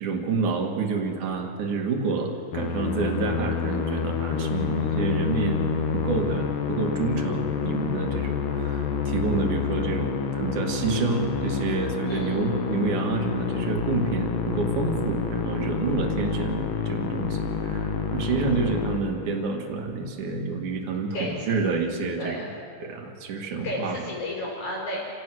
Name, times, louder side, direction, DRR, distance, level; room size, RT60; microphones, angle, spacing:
voice 1, 0.0-22.5 22.8-24.0, right 4 dB, 55° right, 2 dB, 3.0 m, -28 dB
Musical instrument, 2.5-19.7, left 6 dB, 65° left, 2.4 m, -28 dB
voice 2, 22.2-22.5 23.6-25.0, left 1 dB, 45° left, -3 dB, 6.5 m, -32 dB
29.0 x 17.0 x 6.3 m, 2.5 s
omnidirectional pair, 4.8 m